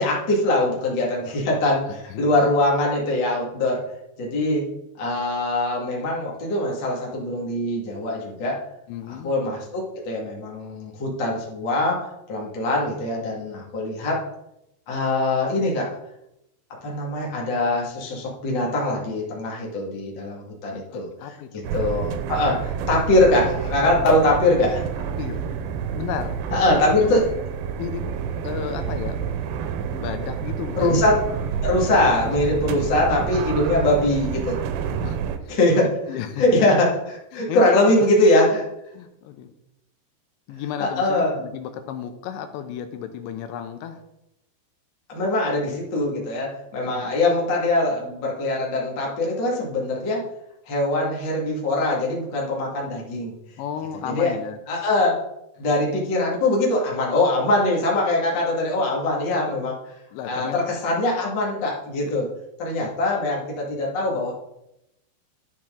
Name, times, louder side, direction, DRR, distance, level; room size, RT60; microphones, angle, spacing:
voice 1, 0.0-3.8 4.2-4.7 5.0-8.6 9.1-14.2 14.9-16.0 16.8-21.3 21.7-24.8 26.5-27.3 30.8-31.2 31.6-34.6 35.5-35.9 36.4-38.6 40.8-41.3 45.1-50.2 50.7-53.4 54.1-54.3 54.7-55.2 55.6-59.8 60.3-62.3 62.6-64.3, left 2 dB, 40° left, -3 dB, 1.9 m, -22 dB
voice 2, 8.9-9.3 20.9-21.7 25.2-25.4 25.9-27.2 27.8-28.0 28.4-29.2 29.9-31.0 33.3-33.5 35.0-35.2 35.5-36.7 37.3-37.7 38.9-39.5 40.5-44.0 46.8-47.1 53.6-54.6 60.1-60.8 62.0-62.2, left 8 dB, 90° left, 8 dB, 3.1 m, -33 dB
sound 1, 21.6-35.4, right 7 dB, 85° right, 2.9 m, -29 dB
12.5 x 5.9 x 3.7 m, 0.85 s
omnidirectional pair, 5.0 m